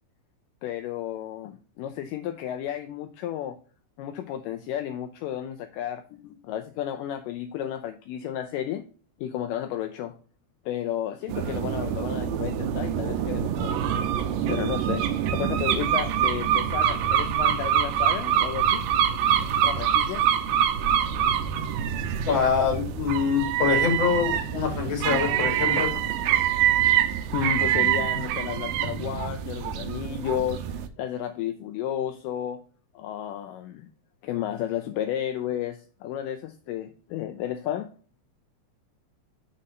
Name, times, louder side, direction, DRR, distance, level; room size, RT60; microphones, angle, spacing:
voice 1, 0.6-3.6 4.0-8.8 9.2-10.2 10.7-13.7 14.5-15.1 15.3-18.9 19.6-20.2 27.3-32.6 33.0-33.9 34.2-37.9, left 10 dB, 80° left, 6 dB, 2.1 m, -32 dB
sound 1, 11.3-30.9, right 9 dB, 85° right, 2.4 m, -25 dB
voice 2, 22.3-26.0, left 6 dB, 40° left, 1 dB, 2.5 m, -25 dB
6.4 x 4.2 x 5.1 m, 0.40 s
omnidirectional pair, 4.0 m